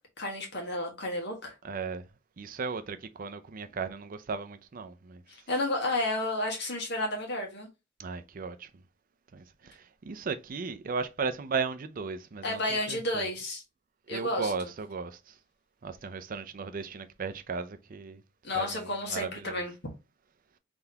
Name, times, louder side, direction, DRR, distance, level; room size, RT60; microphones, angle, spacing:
voice 1, 0.2-1.5 5.3-7.7 12.4-13.6 14.1-14.7 18.4-19.7, left 1 dB, 65° left, 1.6 m, -31 dB
voice 2, 1.6-2.0 2.4-5.2 8.0-8.6 10.1-13.3 14.1-15.1 15.8-18.2 18.5-19.6, right 5 dB, 45° right, 0.5 m, -35 dB
3.8 x 3.4 x 2.8 m
head